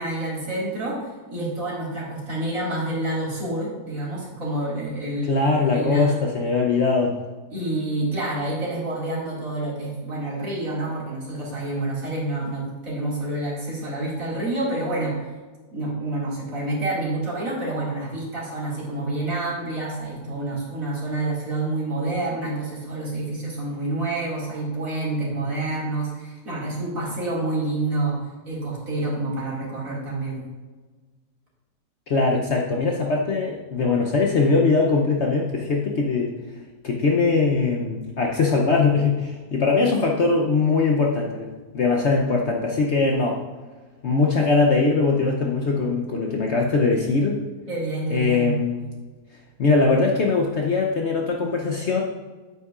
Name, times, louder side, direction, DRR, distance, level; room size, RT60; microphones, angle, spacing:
voice 1, 0.0-5.3 5.7-6.2 7.5-15.3 15.7-28.2 28.4-30.5 47.7-48.6, right 2 dB, 55° right, -5 dB, 2.7 m, -28 dB
voice 2, 5.3-7.2 32.1-36.3 36.8-41.5 41.7-43.4 44.0-47.4 48.1-48.8 49.6-52.0, left 4 dB, 55° left, 0 dB, 0.9 m, -21 dB
9.0 x 8.3 x 2.4 m, 1.3 s
omnidirectional pair, 1.7 m